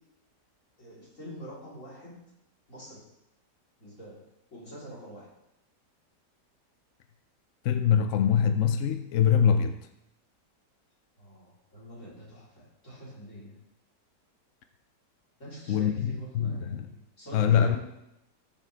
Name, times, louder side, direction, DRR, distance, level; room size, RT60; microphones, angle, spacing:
voice 1, 0.8-2.2 2.7-3.0 3.8-4.2 4.5-5.3 11.2-13.6 15.4-17.8, equal, 45° left, -7 dB, 4.0 m, -45 dB
voice 2, 7.6-9.8 15.7-16.9 17.3-17.8, left 8 dB, 65° left, 8 dB, 0.7 m, -24 dB
14.0 x 7.3 x 3.4 m, 0.87 s
omnidirectional pair, 1.8 m